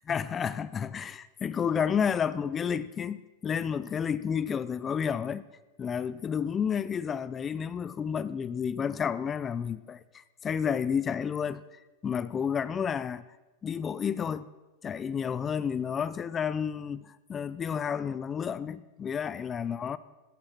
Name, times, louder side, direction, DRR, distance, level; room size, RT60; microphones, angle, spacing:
voice 1, 0.1-5.4 5.8-13.2 13.6-14.5 14.8-20.0, left 7 dB, 20° left, 0.5 m, -31 dB
16.0 x 14.0 x 6.0 m
supercardioid pair, 150°, 0 cm